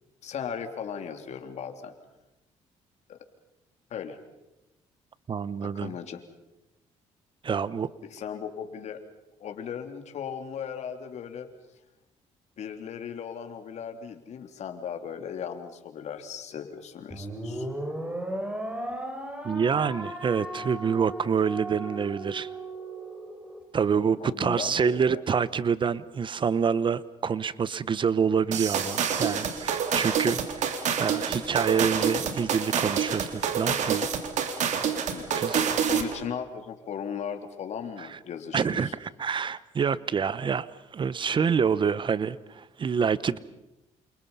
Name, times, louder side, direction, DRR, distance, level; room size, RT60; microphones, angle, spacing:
voice 1, 0.2-1.9 3.1-3.2 3.9-4.2 5.6-6.2 8.1-9.0 9.4-11.5 12.6-17.7 24.2-25.2 35.1-35.4 35.9-38.9, left 7 dB, 65° left, 6 dB, 3.2 m, -37 dB
voice 2, 5.3-6.0 7.4-7.9 19.4-22.5 23.7-34.1 35.3-35.6 38.0-38.2 38.5-43.4, right 6 dB, 40° right, 18 dB, 0.9 m, -27 dB
sound 1, 17.1-23.6, right 1 dB, 10° right, 4.6 m, -36 dB
sound 2, 28.5-36.2, right 7 dB, 70° right, 3.2 m, -27 dB
28.5 x 28.0 x 5.6 m, 0.94 s
cardioid pair, 100°, 13 cm